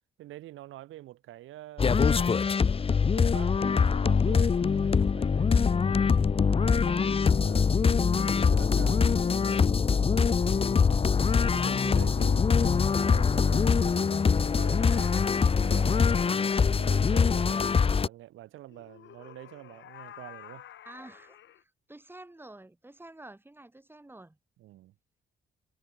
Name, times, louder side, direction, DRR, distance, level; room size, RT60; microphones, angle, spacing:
voice 1, 0.2-2.4 3.0-9.7 10.2-16.4 16.8-20.7 24.6-24.9, right 15 dB, 85° right, 6.0 m, -47 dB
sound 1, 1.8-18.1, left 5 dB, 30° left, 0.7 m, -23 dB
sound 2, 11.2-13.6 14.6-16.1 18.7-21.6, left 11 dB, 70° left, 3.1 m, -51 dB
voice 2, 20.9-24.4, right 2 dB, 10° right, 3.5 m, -49 dB
cardioid pair, 90°, 20 cm